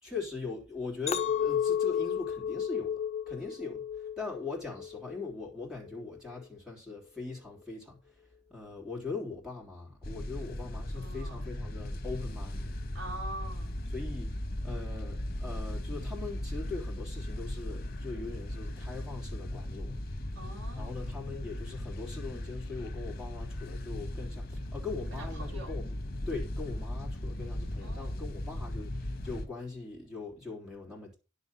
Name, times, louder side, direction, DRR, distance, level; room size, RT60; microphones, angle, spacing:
voice 1, 0.0-3.0 3.3-8.2 8.5-12.7 13.9-14.3 14.6-20.0 20.8-26.0 26.3-31.2, left 4 dB, 5° right, 3.5 m, -41 dB
Chink clink, 1.1-5.4 5.9-6.3, left 8 dB, 35° left, 1.1 m, -32 dB
sound 1, 10.0-29.5, left 1 dB, 55° left, 1.8 m, -37 dB
voice 2, 10.9-11.5 12.9-13.8 20.3-21.2 25.1-25.7 27.8-28.2, right 1 dB, 80° right, 4.9 m, -44 dB
10.5 x 6.6 x 5.8 m
head